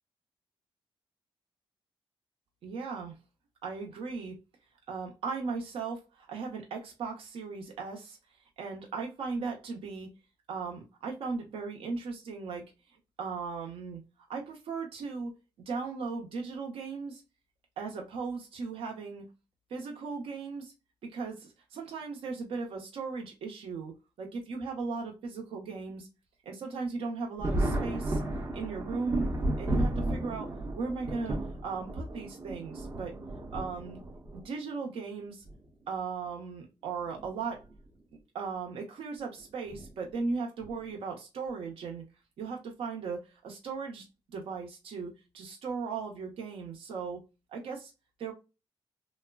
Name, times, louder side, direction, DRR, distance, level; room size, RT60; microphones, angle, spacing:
voice 1, 2.6-3.2 3.6-4.4 4.9-8.2 8.6-10.1 10.5-14.0 14.3-15.3 15.7-17.2 17.8-19.2 19.7-20.7 21.0-26.1 26.4-28.2 28.5-29.2 29.6-33.2 33.5-34.0 34.3-35.4 35.9-37.6 38.3-42.0 42.4-44.1 44.3-47.2 47.5-47.9 48.2-48.3, right 4 dB, 80° right, 0.8 m, -37 dB
Thunder, 27.4-34.4 35.5-35.6 37.0-37.3 37.6-37.7 39.7-39.9 40.6-41.0, right 1 dB, 25° right, 0.5 m, -33 dB
3.0 x 2.1 x 2.3 m
wide cardioid pair, 160°, 9 cm